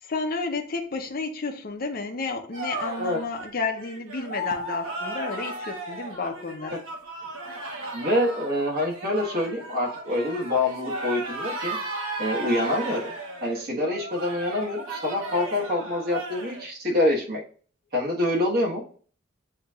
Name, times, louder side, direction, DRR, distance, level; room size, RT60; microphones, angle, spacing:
voice 1, 0.0-6.7, left 3 dB, 45° left, 4 dB, 0.6 m, -31 dB
sound 1, 2.5-16.7, right 2 dB, 80° right, 1.1 m, -35 dB
voice 2, 7.9-11.8 12.2-13.1 13.4-17.4 17.9-18.8, left 1 dB, 50° right, -3 dB, 1.5 m, -26 dB
7.8 x 2.8 x 2.4 m, 0.43 s
head